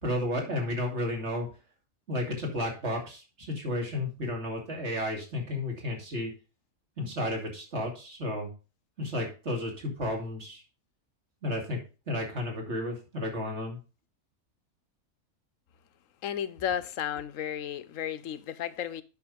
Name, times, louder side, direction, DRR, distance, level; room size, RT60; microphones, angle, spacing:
voice 1, 0.0-1.5 2.1-6.3 7.0-8.5 9.0-10.6 11.4-11.8 12.1-13.8, left 1 dB, 50° right, 3.0 m, -32 dB
voice 2, 16.2-19.0, left 9 dB, 70° left, 1.1 m, -33 dB
8.3 x 6.3 x 5.1 m
omnidirectional pair, 1.5 m